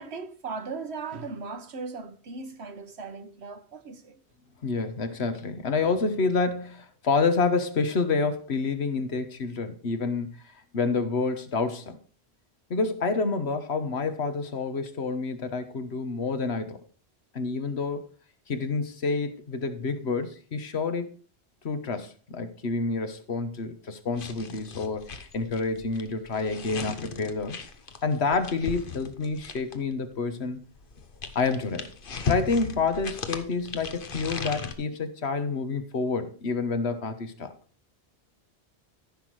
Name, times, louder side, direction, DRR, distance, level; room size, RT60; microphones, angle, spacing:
voice 1, 0.0-4.2, right 4 dB, 70° right, 1.4 m, -38 dB
voice 2, 4.6-10.4 10.7-12.0 12.7-16.8 17.3-18.1 18.5-21.1 21.6-27.6 28.0-30.6 31.3-31.9 32.2-37.5, left 4 dB, 70° left, 1.5 m, -28 dB
sound 1, 24.1-29.9 30.8-34.7, left 5 dB, 55° left, 1.2 m, -37 dB
14.5 x 6.0 x 4.7 m
omnidirectional pair, 1.1 m